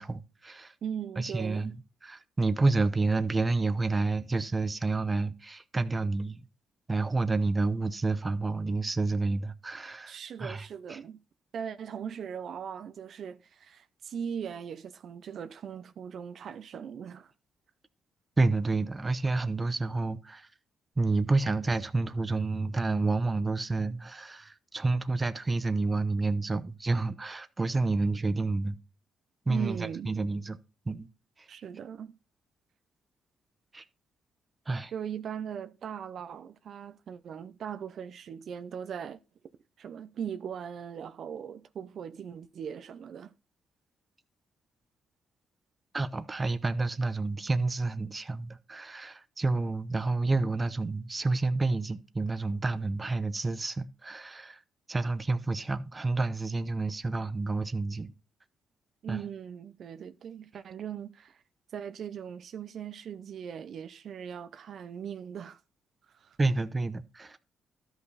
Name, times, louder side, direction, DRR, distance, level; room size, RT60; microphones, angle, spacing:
voice 1, 0.0-0.7 1.2-1.8 2.0-6.4 6.9-11.0 18.4-20.5 21.0-28.8 29.5-30.6 30.9-31.1 33.7-33.8 34.7-34.9 45.9-54.6 54.9-58.1 59.1-59.2 66.4-67.4, right 3 dB, 25° right, 0.9 m, -29 dB
voice 2, 0.8-1.8 10.1-11.2 11.5-17.3 29.5-30.1 31.5-32.2 34.9-39.2 39.8-43.3 59.0-61.4 61.7-65.6 66.1-66.4, right 8 dB, 60° right, 0.7 m, -39 dB
12.5 x 5.6 x 4.1 m
cardioid pair, 90°, 0 cm